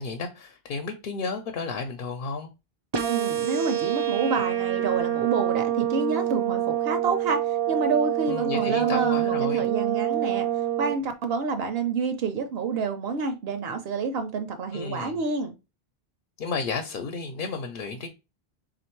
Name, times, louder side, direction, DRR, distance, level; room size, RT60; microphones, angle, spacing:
voice 1, 0.0-2.5 8.3-9.6 14.7-15.2 16.4-18.1, left 4 dB, 65° left, 0.7 m, -32 dB
sound 1, 2.9-10.9, right 11 dB, 35° right, 0.4 m, -26 dB
voice 2, 3.1-10.5 10.8-15.5, right 5 dB, 75° right, 0.8 m, -28 dB
3.4 x 2.5 x 4.4 m
omnidirectional pair, 1.0 m